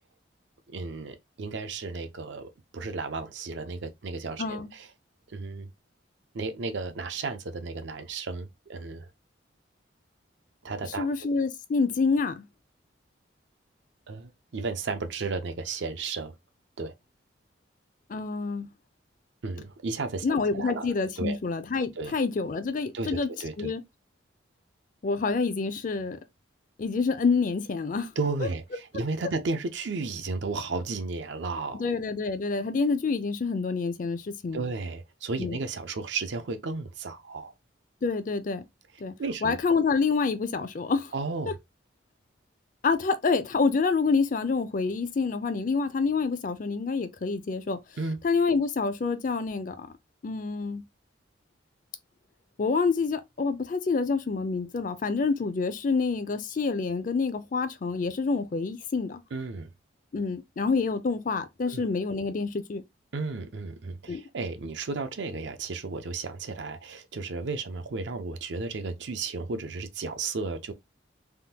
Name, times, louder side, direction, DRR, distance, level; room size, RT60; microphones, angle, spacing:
voice 1, 0.7-4.9 5.3-5.7 6.3-9.1 10.6-11.1 14.1-16.3 16.8-16.9 19.4-20.3 20.5-21.4 22.0-22.2 22.9-23.7 28.2-31.8 34.5-37.5 39.2-39.6 41.1-41.6 48.0-48.2 59.3-59.7 61.7-61.8 63.1-70.7, right 3 dB, 65° right, 0.5 m, -33 dB
voice 2, 4.4-4.7 11.0-12.5 18.1-18.7 20.2-23.3 23.6-23.8 25.0-26.2 26.8-28.1 31.7-34.6 35.4-35.6 38.0-38.6 39.0-39.1 39.4-41.1 42.8-47.8 48.2-49.9 50.2-50.8 52.6-59.2 60.1-62.8 64.1-64.2, left 4 dB, 45° left, 0.4 m, -27 dB
3.5 x 2.2 x 2.8 m
head